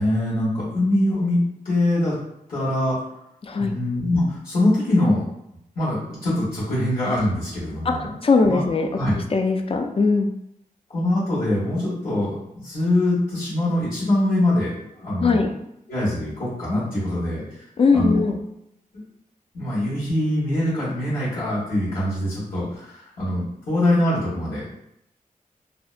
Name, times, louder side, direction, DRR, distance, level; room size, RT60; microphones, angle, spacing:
voice 1, 0.0-2.2 2.5-3.0 3.6-5.2 5.7-8.1 8.4-8.6 8.9-9.1 10.9-15.4 15.9-17.6 17.9-18.1 19.5-24.6, left 1 dB, 80° left, -10 dB, 1.2 m, -23 dB
voice 2, 7.8-9.0 9.3-10.3 15.2-15.5 17.8-18.4, left 4 dB, 40° left, 4 dB, 0.3 m, -20 dB
2.6 x 2.1 x 2.4 m, 0.80 s
wide cardioid pair, 80°, 14 cm